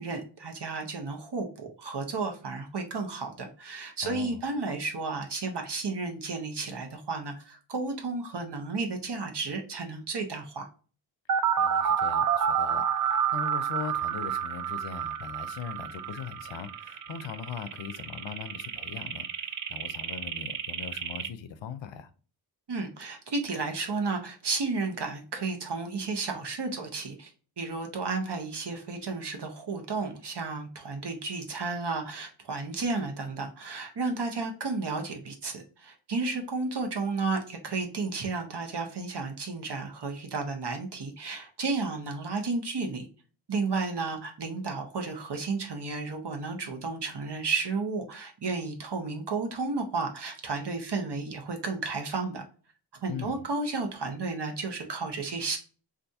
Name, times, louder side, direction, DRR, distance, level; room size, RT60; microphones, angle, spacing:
voice 1, 0.0-10.7 22.7-27.3 27.6-43.1 43.5-52.4 53.0-55.6, right 3 dB, 65° right, 0.9 m, -32 dB
voice 2, 4.0-4.5 11.6-22.1 53.1-53.4, left 7 dB, 80° left, 0.5 m, -40 dB
sound 1, 11.3-21.3, right 8 dB, 45° right, 0.4 m, -29 dB
2.7 x 2.5 x 3.4 m
cardioid pair, 45°, 44 cm